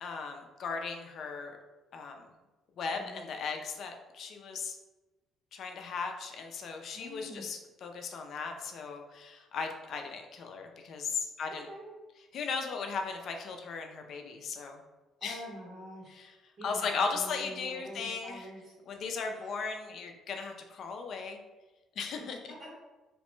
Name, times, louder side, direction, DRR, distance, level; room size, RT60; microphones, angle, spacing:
voice 1, 0.0-1.6 1.9-2.3 2.8-4.8 5.5-11.7 12.3-14.8 15.2-15.4 16.1-16.3 16.6-18.5 18.9-21.4 22.0-22.4, left 5 dB, 60° left, 4 dB, 0.4 m, -37 dB
voice 2, 2.9-3.2 6.9-7.4 11.4-11.9 15.2-16.2 16.6-18.7 19.3-19.5 22.2-22.3 22.6-22.7, equal, 45° right, -5 dB, 1.3 m, -46 dB
2.9 x 2.1 x 3.0 m, 1.1 s
cardioid pair, 115°, 0 cm